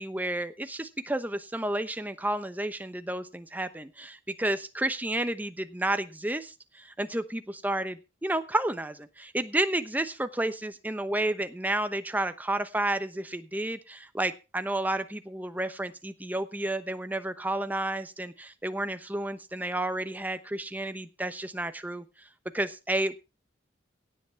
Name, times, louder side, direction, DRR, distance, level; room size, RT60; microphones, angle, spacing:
voice 1, 0.0-22.0 22.5-23.2, right 1 dB, 10° right, 10 dB, 0.9 m, -31 dB
17.0 x 8.2 x 4.6 m, 0.30 s
head